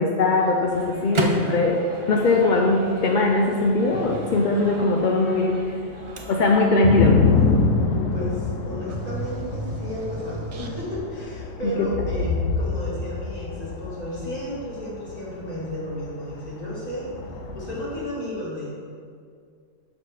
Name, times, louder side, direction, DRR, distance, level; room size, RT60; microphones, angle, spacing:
voice 1, 0.0-1.8 2.1-5.6 6.3-7.2 11.6-11.9, left 2 dB, 55° left, 1 dB, 0.6 m, -20 dB
sound 1, 0.7-0.8 5.3-5.4 5.7-18.0, left 4 dB, 80° left, 1.1 m, -27 dB
Microwave oven, 0.7-6.7, right 2 dB, 30° right, 0.6 m, -34 dB
voice 2, 7.8-17.1 17.6-18.7, left 1 dB, 30° left, -7 dB, 2.1 m, -33 dB
sound 2, 8.9-11.2, right 4 dB, 70° right, 0.3 m, -35 dB
6.5 x 5.1 x 5.7 m, 2.2 s
omnidirectional pair, 1.3 m